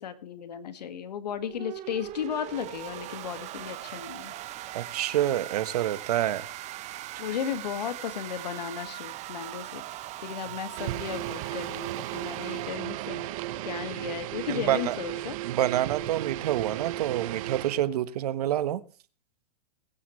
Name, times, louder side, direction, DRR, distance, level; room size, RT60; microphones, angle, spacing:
voice 1, 0.0-4.3 7.2-9.8 10.2-13.2 13.6-15.4, left 8 dB, 80° left, 11 dB, 2.1 m, -35 dB
sound 1, 1.3-13.9, right 15 dB, 35° right, 1.0 m, -40 dB
voice 2, 4.7-6.5 14.5-15.0 15.4-18.8, right 12 dB, 70° right, 14 dB, 1.3 m, -27 dB
sound 2, 10.8-17.8, right 15 dB, 55° right, 1.1 m, -35 dB
21.0 x 10.5 x 3.3 m, 0.35 s
hypercardioid pair, 120°, 21 cm